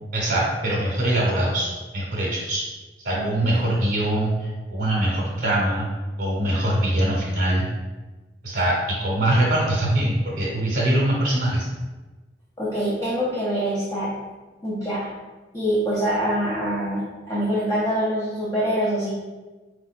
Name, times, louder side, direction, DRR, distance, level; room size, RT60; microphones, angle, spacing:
voice 1, 0.1-2.6 3.0-5.9 6.2-7.7 8.4-11.7, right 1 dB, 60° right, -4 dB, 0.9 m, -23 dB
voice 2, 12.6-14.1 14.6-15.1 15.5-19.2, equal, 20° left, -7 dB, 0.8 m, -25 dB
4.5 x 2.4 x 4.1 m, 1.2 s
head